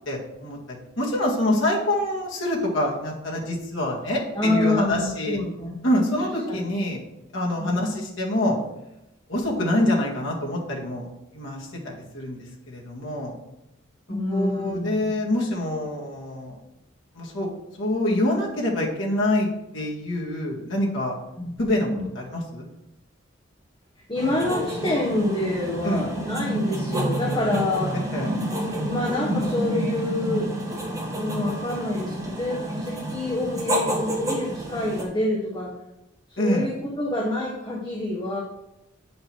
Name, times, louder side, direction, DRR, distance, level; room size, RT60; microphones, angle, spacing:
voice 1, 0.1-5.4 5.8-7.0 7.3-8.6 9.3-12.4 12.7-13.4 14.3-16.6 17.1-17.5 17.8-19.5 19.7-21.1 21.6-21.9 22.1-22.7 25.8-26.1 28.1-28.3 36.4-36.7, left 1 dB, 70° left, -2 dB, 2.1 m, -26 dB
voice 2, 4.4-5.7 6.5-6.6 7.6-7.8 14.1-15.1 21.4-21.5 21.9-22.0 24.1-27.9 28.8-30.6 31.1-35.7 36.4-38.4, left 2 dB, 20° left, -3 dB, 1.2 m, -27 dB
sound 1, 24.2-35.0, right 1 dB, 15° right, 1.5 m, -29 dB
8.9 x 5.4 x 4.6 m, 0.89 s
head